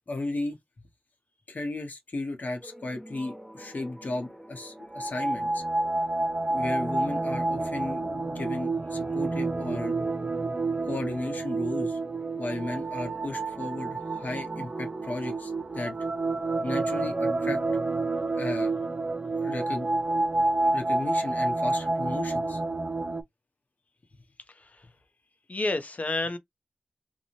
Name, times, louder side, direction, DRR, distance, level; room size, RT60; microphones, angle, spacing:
voice 1, 0.1-0.6 1.5-5.6 6.5-9.9 10.9-12.0 12.4-15.9 16.6-17.6 18.3-18.8 19.4-19.9 20.7-22.6, left 2 dB, 90° left, 0.9 m, -35 dB
sound 1, 2.6-19.0, equal, ahead, 0.8 m, -49 dB
sound 2, 4.8-23.2, right 2 dB, 50° right, 0.4 m, -29 dB
voice 2, 24.5-24.9 25.5-26.4, left 2 dB, 65° left, 0.6 m, -30 dB
2.6 x 2.2 x 3.0 m
wide cardioid pair, 55°, 3 cm